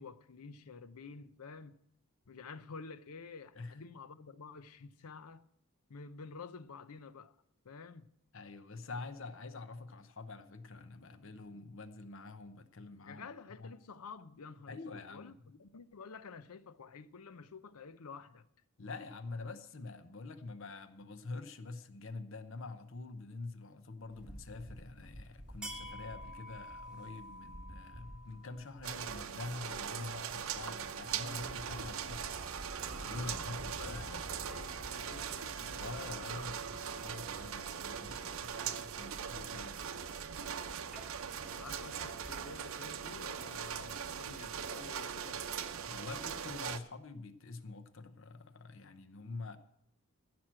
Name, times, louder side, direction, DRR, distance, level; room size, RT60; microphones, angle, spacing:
voice 1, 0.0-1.8 2.3-5.5 5.9-7.4 7.6-8.1 13.1-18.5 33.0-35.9 41.4-45.4, left 5 dB, 85° left, 0.6 m, -50 dB
voice 2, 8.3-13.7 14.7-15.3 18.8-34.0 35.8-40.3 45.8-49.6, left 3 dB, 60° left, 0.8 m, -46 dB
sound 1, 24.1-42.5, equal, 5° right, 1.1 m, -51 dB
sound 2, 28.8-46.8, right 7 dB, 70° right, 0.7 m, -41 dB
Wind instrument woodwind instrument, 29.4-35.3, right 2 dB, 25° right, 0.7 m, -55 dB
14.5 x 6.1 x 7.5 m
head